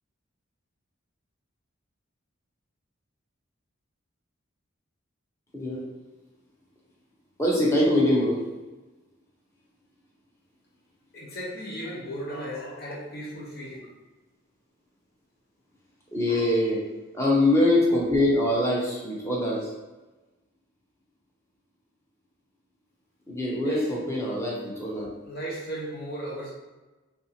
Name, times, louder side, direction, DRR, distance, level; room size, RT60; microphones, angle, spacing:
voice 1, 7.4-8.4 16.1-16.8 17.1-19.7 23.3-25.1, left 1 dB, 15° left, -5 dB, 0.8 m, -23 dB
voice 2, 11.1-13.9 16.3-16.5 23.6-23.9 25.3-26.5, right 1 dB, 50° left, -4 dB, 1.0 m, -36 dB
3.6 x 2.7 x 2.8 m, 1.2 s
head